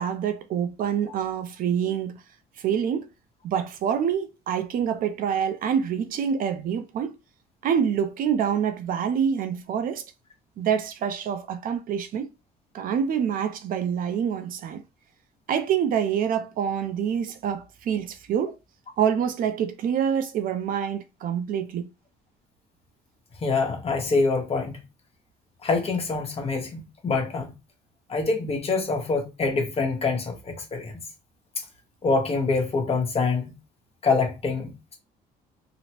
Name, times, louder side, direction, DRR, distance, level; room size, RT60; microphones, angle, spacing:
voice 1, 0.0-2.2 2.6-3.1 3.4-7.1 7.6-10.0 10.6-12.3 12.7-14.8 15.5-18.6 19.0-21.9, right 8 dB, 55° right, 0.4 m, -26 dB
voice 2, 23.4-24.8 25.6-27.5 28.1-31.0 32.0-33.5 34.0-35.0, left 4 dB, 35° left, 1.0 m, -25 dB
2.9 x 2.0 x 2.8 m
cardioid pair, 110°, 17 cm